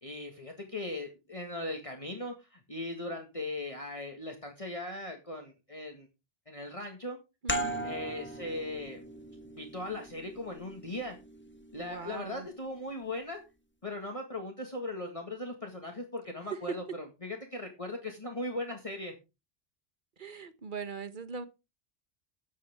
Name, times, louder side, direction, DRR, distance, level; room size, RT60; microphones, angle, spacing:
voice 1, 0.0-6.1 6.5-7.2 7.8-9.0 9.5-11.2 11.7-13.4 13.8-19.1, left 1 dB, 30° left, 1.9 m, -39 dB
voice 2, 7.4-7.9 11.8-12.5 20.2-21.5, right 5 dB, 45° right, 1.3 m, -40 dB
sound 1, 7.5-12.8, right 1 dB, 10° left, 1.5 m, -39 dB
13.5 x 9.5 x 3.6 m
omnidirectional pair, 1.2 m